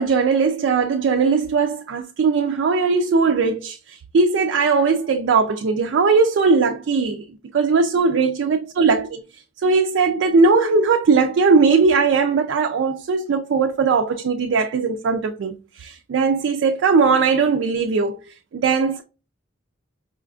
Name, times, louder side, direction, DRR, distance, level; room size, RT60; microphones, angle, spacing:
voice 1, 0.0-7.2 7.5-9.2 9.6-18.2 18.5-19.0, right 4 dB, 65° right, 0.3 m, -19 dB
4.9 x 2.3 x 2.4 m
head